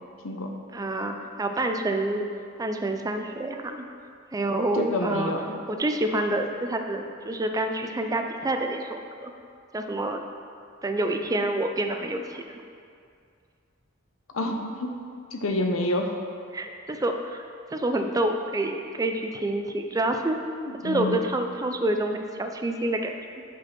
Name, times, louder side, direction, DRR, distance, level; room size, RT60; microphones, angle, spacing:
voice 1, 0.7-2.2 2.6-3.8 4.3-5.3 5.7-9.3 9.7-10.2 10.8-12.6 16.5-17.4 17.7-20.4 20.8-23.4, right 1 dB, 15° right, 5 dB, 0.4 m, -28 dB
voice 2, 4.8-5.4 14.3-14.9 15.3-16.1 20.8-21.2, left 1 dB, 75° left, 3 dB, 0.7 m, -27 dB
6.1 x 5.2 x 4.3 m, 2.3 s
head